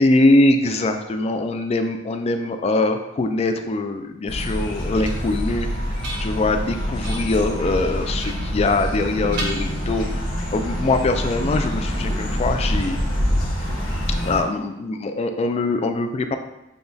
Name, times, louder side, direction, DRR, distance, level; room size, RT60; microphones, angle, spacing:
voice 1, 0.0-5.7 6.2-13.0 14.2-16.4, left 2 dB, 30° left, 7 dB, 0.3 m, -22 dB
sound 1, 4.3-14.4, equal, 90° left, 1.2 m, -26 dB
sound 2, 4.4-5.4 5.8-6.6 7.0-7.4 8.2-9.0 9.3-10.3, right 1 dB, 55° right, 0.8 m, -35 dB
6.8 x 2.3 x 2.6 m, 0.94 s
head